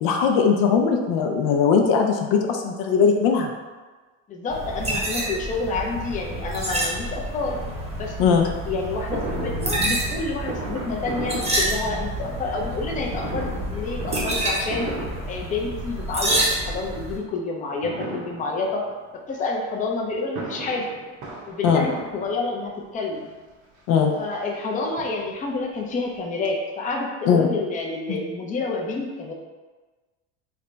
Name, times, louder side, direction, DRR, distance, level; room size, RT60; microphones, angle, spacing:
voice 1, 0.0-3.5 8.2-8.5 21.6-21.9 23.9-24.1 27.3-27.5 28.1-28.2, left 6 dB, 65° left, 3 dB, 0.6 m, -19 dB
voice 2, 4.3-7.6 7.9-14.9 15.3-18.8 19.3-20.9 21.5-23.3 24.2-29.3, left 3 dB, 20° left, -1 dB, 0.5 m, -29 dB
sound 1, 4.5-17.2, right 1 dB, 15° right, 0.9 m, -28 dB
Fireworks, 9.1-12.3 13.1-16.0 16.3-16.9 17.8-18.9 20.1-22.7 23.5-23.6 23.9-24.0 24.3-25.6 25.9-26.0 26.1-26.2, right 2 dB, 55° right, 0.9 m, -35 dB
3.3 x 2.1 x 3.8 m, 1.3 s
supercardioid pair, 110°, 39 cm